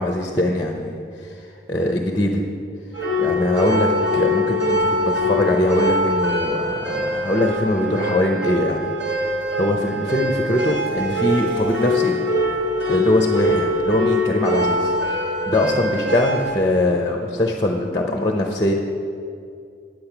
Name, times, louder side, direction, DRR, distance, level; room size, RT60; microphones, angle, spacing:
voice 1, 0.0-1.4 1.7-2.5 3.2-12.2 12.9-15.2 15.5-18.7, left 1 dB, 20° left, 2 dB, 0.7 m, -22 dB
sound 1, 2.9-16.5, left 1 dB, 60° right, 1.3 m, -23 dB
9.2 x 8.6 x 5.9 m, 2.4 s
head